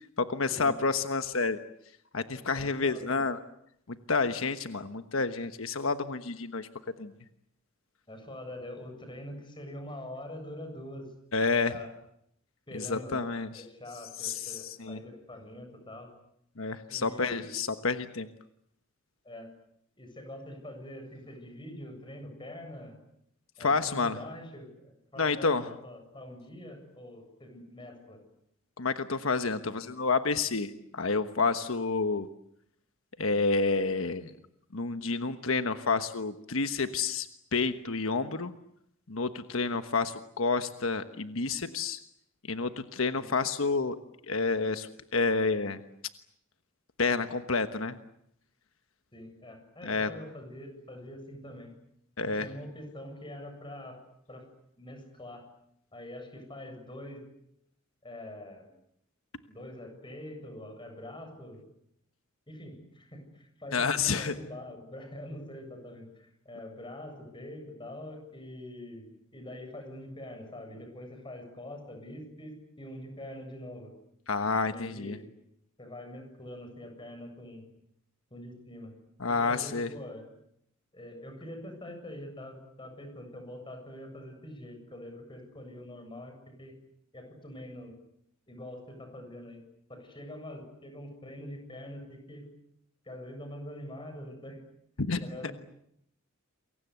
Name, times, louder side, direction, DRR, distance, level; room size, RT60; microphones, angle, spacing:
voice 1, 0.2-1.6 2.1-3.4 3.9-6.7 7.0-7.1 11.3-11.8 12.7-13.6 14.2-15.0 16.6-18.3 23.6-24.2 25.2-25.7 28.8-32.3 33.2-34.3 34.7-38.5 39.1-42.0 42.5-44.0 44.3-45.8 47.0-48.0 49.8-50.1 52.2-52.5 63.7-64.4 74.3-75.2 79.2-79.9 95.0-95.5, left 4 dB, 85° left, 9 dB, 1.3 m, -29 dB
voice 2, 2.5-3.3 8.1-11.1 11.7-11.9 12.7-13.2 13.5-16.1 16.9-17.6 19.2-19.5 20.0-23.0 23.6-28.2 43.1-43.3 49.1-51.7 52.3-54.0 54.3-54.5 54.8-55.5 55.9-57.3 58.0-58.7 59.5-61.6 62.5-73.9 74.6-75.3 75.8-77.6 78.3-79.0 79.3-80.3 80.9-86.8 87.1-88.0 88.5-89.6 89.9-92.5 93.0-94.6 95.2-95.5, left 1 dB, 25° left, 6 dB, 7.8 m, -44 dB
28.5 x 23.5 x 8.1 m, 0.74 s
head